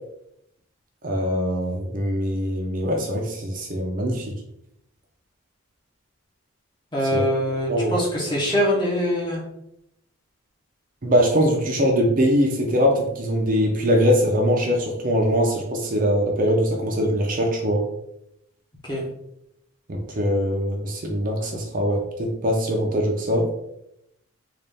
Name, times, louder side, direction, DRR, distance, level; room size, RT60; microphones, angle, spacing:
voice 1, 1.0-4.3 7.1-7.2 7.7-7.9 11.0-17.8 19.9-23.5, equal, 40° right, 1 dB, 0.6 m, -22 dB
voice 2, 6.9-9.4 18.8-19.0, equal, 20° left, -4 dB, 1.0 m, -23 dB
3.9 x 2.5 x 3.4 m, 0.80 s
head